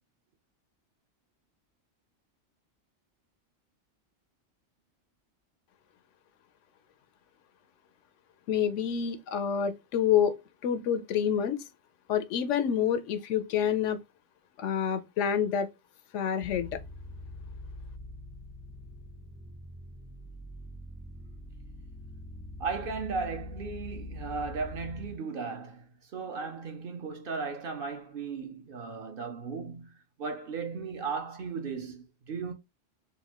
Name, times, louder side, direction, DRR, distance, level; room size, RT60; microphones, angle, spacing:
voice 1, 8.5-10.3 10.6-11.6 12.1-14.0 14.6-15.7 16.1-16.7, left 8 dB, 90° left, 0.9 m, -27 dB
sound 1, 16.4-25.1, left 1 dB, 5° left, 0.5 m, -44 dB
voice 2, 22.6-29.9 30.2-32.5, right 5 dB, 55° right, 0.8 m, -36 dB
4.1 x 2.2 x 2.9 m
omnidirectional pair, 1.2 m